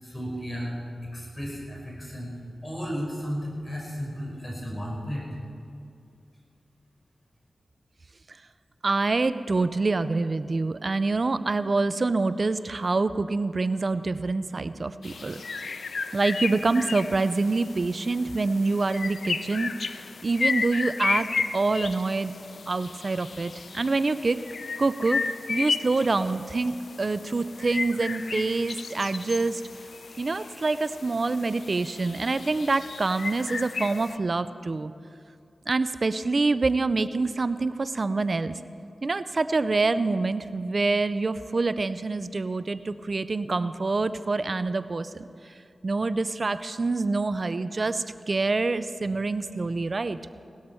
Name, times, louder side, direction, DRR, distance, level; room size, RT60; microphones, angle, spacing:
voice 1, 0.0-2.3 2.6-5.3, equal, 25° left, -3 dB, 4.7 m, -34 dB
voice 2, 8.8-15.4 16.1-22.3 22.7-24.4 24.8-25.2 25.5-29.6 30.2-34.9 35.7-38.5 39.0-45.5 45.8-50.2, right 3 dB, 55° right, 13 dB, 0.5 m, -26 dB
sound 1, 15.0-34.2, left 4 dB, 75° left, 0.5 m, -34 dB
18.5 x 13.0 x 4.5 m, 2.4 s
cardioid pair, 45°, 0 cm